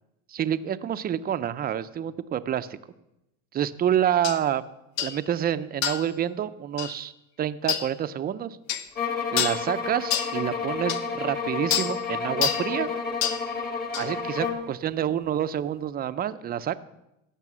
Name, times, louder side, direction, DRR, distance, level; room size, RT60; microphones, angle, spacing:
voice 1, 0.4-2.7 3.5-4.6 5.0-7.1 7.4-8.6 9.3-12.9 14.0-16.8, right 10 dB, 25° right, 13 dB, 0.5 m, -28 dB
sound 1, 4.2-4.4 5.0-5.2 5.8-6.1 6.8-6.9 7.7-7.9 8.7-8.9 9.4-9.6 10.1-10.3 10.9-11.0 11.7-11.9 12.4-12.7 13.2-13.4 13.9-14.1, left 9 dB, 85° left, 1.0 m, -27 dB
sound 2, 8.9-14.7, left 5 dB, 25° left, 1.5 m, -30 dB
16.5 x 6.8 x 6.1 m, 0.91 s
supercardioid pair, 125°, 38 cm